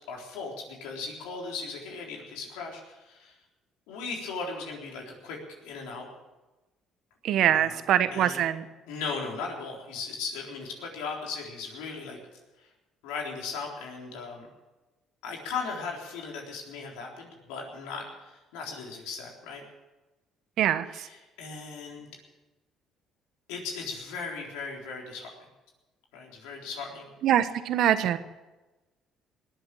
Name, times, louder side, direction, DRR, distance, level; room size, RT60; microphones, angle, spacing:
voice 1, 0.1-3.4 3.9-6.1 7.5-7.8 8.1-8.4 8.9-12.2 12.6-12.7 13.0-14.5 15.2-19.6 20.9-22.1 23.5-25.3 26.1-27.1, left 4 dB, 85° left, 0 dB, 3.9 m, -37 dB
voice 2, 7.2-8.7 20.6-21.1 27.2-28.2, right 11 dB, 70° right, 12 dB, 1.1 m, -24 dB
20.5 x 7.9 x 8.7 m, 1.1 s
supercardioid pair, 75°, 0 cm